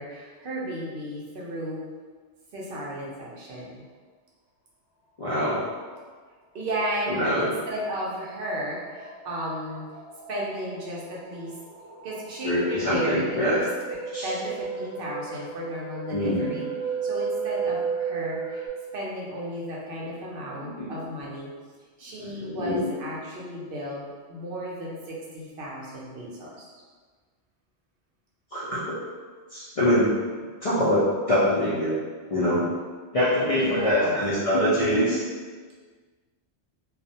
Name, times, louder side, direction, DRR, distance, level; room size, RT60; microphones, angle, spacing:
voice 1, 0.0-1.8 2.5-3.8 6.5-9.8 10.3-11.5 12.0-13.7 14.2-18.6 18.9-21.5 22.0-26.7 33.6-34.2, right 1 dB, 60° right, -5 dB, 0.7 m, -34 dB
voice 2, 5.2-5.6 7.1-7.5 12.4-13.6 14.1-14.3 16.1-16.5 20.6-20.9 22.2-22.8 28.5-29.0 29.5-30.2 30.6-32.0 32.3-32.6 33.1-35.2, equal, 50° left, -10 dB, 0.4 m, -24 dB
sound 1, 7.8-18.7, right 5 dB, 30° right, 0.4 m, -34 dB
2.3 x 2.0 x 2.7 m, 1.5 s
omnidirectional pair, 1.1 m